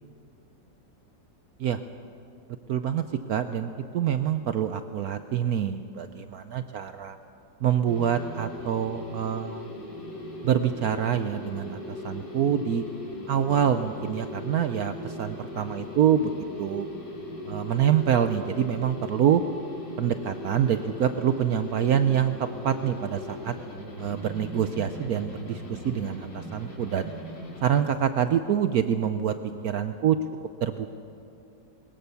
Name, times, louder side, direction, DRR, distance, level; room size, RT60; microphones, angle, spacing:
voice 1, 2.7-3.0 3.3-7.2 7.6-9.7 10.4-12.8 13.3-16.3 16.6-16.9 17.5-19.4 20.0-23.5 24.0-27.1 27.6-29.3 29.6-30.2 30.6-30.9, right 9 dB, 65° right, 10 dB, 1.0 m, -26 dB
sound 1, 7.9-27.8, left 1 dB, 85° left, 3.1 m, -39 dB
21.5 x 19.5 x 7.0 m, 2.7 s
omnidirectional pair, 2.0 m